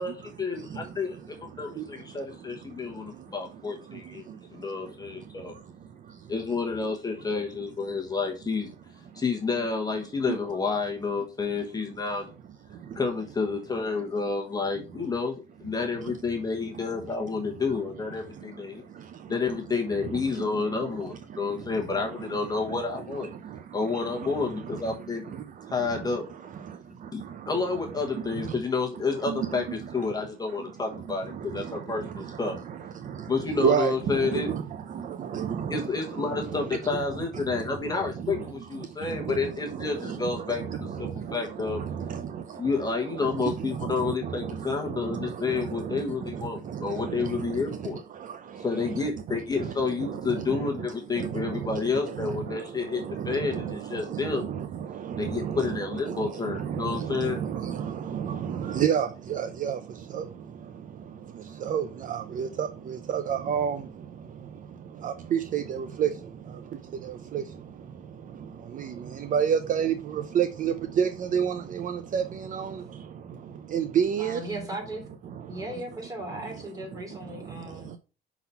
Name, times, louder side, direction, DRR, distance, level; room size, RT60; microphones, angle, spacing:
voice 1, 0.0-4.2 4.5-5.5 6.3-8.7 9.1-12.3 12.9-18.8 19.3-23.3 23.7-25.2 25.7-26.3 27.1-32.6 33.3-34.5 35.7-41.8 42.5-48.0 48.6-54.5 55.2-57.4, left 4 dB, 20° left, 1.1 m, -30 dB
voice 2, 0.6-1.2 1.8-1.9 2.7-3.3 3.9-4.7 5.3-5.4 6.0-6.3 10.3-10.4 12.7-13.0 18.3-18.4 18.7-19.3 20.3-20.8 21.3-21.7 22.7-22.8 23.3-24.8 25.3-26.1 26.6-27.5 28.1-28.6 29.3-29.6 30.9-35.9 36.2-36.4 36.9-37.0 37.3-37.6 38.4-38.5 38.8-47.6 47.9-74.5 75.3-75.7 76.3-76.4 76.9-77.0 77.3-78.0, right 8 dB, 45° right, 0.5 m, -32 dB
voice 3, 74.2-75.0 75.5-77.9, right 1 dB, 20° right, 3.0 m, -37 dB
5.7 x 4.1 x 5.5 m
cardioid pair, 140°, 19 cm